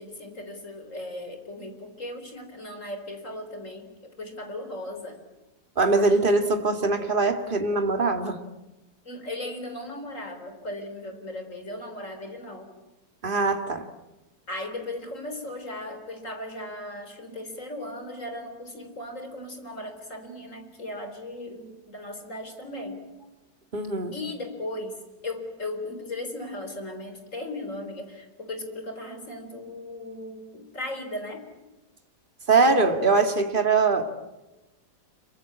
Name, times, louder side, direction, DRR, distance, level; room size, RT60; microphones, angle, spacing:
voice 1, 0.0-5.2 9.0-12.7 14.5-23.0 24.1-25.0 25.2-31.5 33.2-33.4, left 1 dB, 45° left, 7 dB, 4.3 m, -37 dB
voice 2, 5.8-8.4 13.2-13.8 23.7-24.2 32.5-34.0, right 3 dB, 30° right, 6 dB, 2.3 m, -22 dB
27.0 x 24.0 x 8.7 m, 1.0 s
omnidirectional pair, 1.9 m